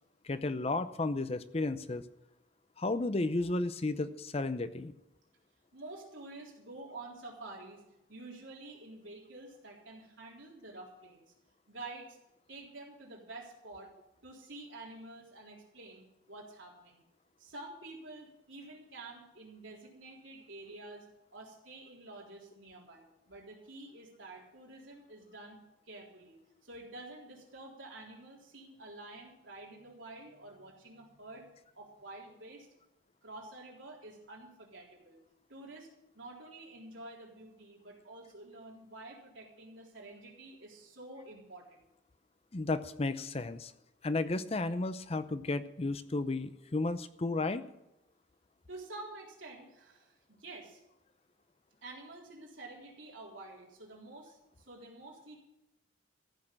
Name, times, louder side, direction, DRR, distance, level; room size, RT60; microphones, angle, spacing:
voice 1, 0.2-2.0 2.8-4.9 42.5-43.7 44.0-47.6, left 2 dB, 30° left, 12 dB, 0.6 m, -33 dB
voice 2, 5.7-7.8 8.1-11.2 11.7-12.2 12.5-13.9 14.2-17.0 17.4-31.5 31.7-32.7 33.2-35.2 35.5-35.9 36.1-41.8 48.7-50.8 51.8-55.4, right 2 dB, 85° right, -2 dB, 3.8 m, -49 dB
14.5 x 6.4 x 8.8 m, 0.88 s
head